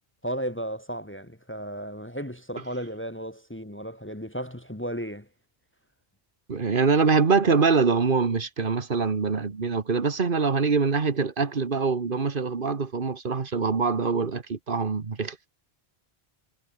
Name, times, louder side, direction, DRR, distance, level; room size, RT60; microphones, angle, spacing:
voice 1, 0.2-5.3, equal, 10° left, 1.3 m, -34 dB
voice 2, 6.5-15.4, right 4 dB, 50° right, 1.6 m, -24 dB
omnidirectional pair, 1.1 m